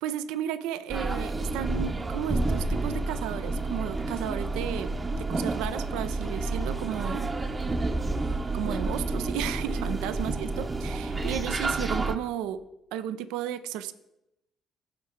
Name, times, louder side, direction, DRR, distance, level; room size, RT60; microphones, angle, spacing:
voice 1, 0.0-7.3 8.5-12.6 12.9-13.9, right 10 dB, 70° right, 12 dB, 0.5 m, -33 dB
sound 1, 0.9-12.2, right 2 dB, 30° right, 0.8 m, -30 dB
14.5 x 5.1 x 3.6 m, 0.87 s
figure-of-eight pair, 45°, 0 cm